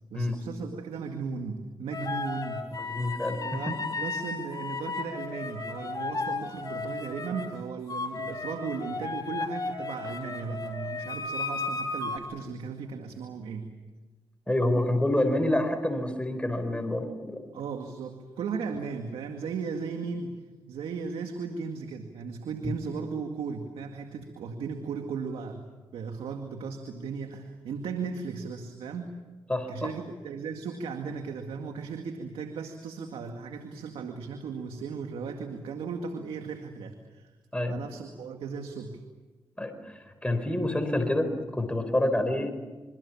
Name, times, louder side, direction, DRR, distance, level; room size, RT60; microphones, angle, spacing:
voice 1, 0.1-2.7 3.4-13.7 17.5-20.4 20.7-29.1 29.7-37.3 37.7-39.0, right 5 dB, 90° right, 5 dB, 2.0 m, -36 dB
sound 1, 1.9-7.5 7.9-12.2, left 3 dB, 40° left, 5.1 m, -34 dB
voice 2, 2.8-3.6 14.5-17.4 22.6-22.8 29.5-29.9 37.5-37.8 39.6-42.5, left 1 dB, 10° left, 7 dB, 4.4 m, -28 dB
27.5 x 24.0 x 7.2 m, 1.2 s
supercardioid pair, 50°, 9 cm